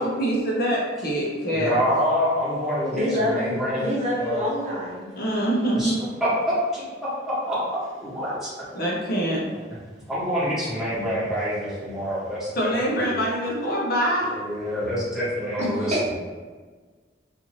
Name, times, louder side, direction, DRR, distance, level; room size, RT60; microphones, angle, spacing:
voice 1, 0.0-2.0 5.2-6.0 8.7-9.4 12.6-14.4, right 1 dB, 55° left, -4 dB, 0.7 m, -24 dB
voice 2, 1.5-3.9 4.2-4.5 5.7-5.9 6.2-6.8 7.5-7.6 8.0-8.5 10.1-12.7 13.0-13.2 14.2-16.1, equal, ahead, -11 dB, 1.1 m, -26 dB
voice 3, 2.9-5.1 15.6-16.1, left 1 dB, 35° right, -6 dB, 0.7 m, -26 dB
2.6 x 2.5 x 3.1 m, 1.4 s
head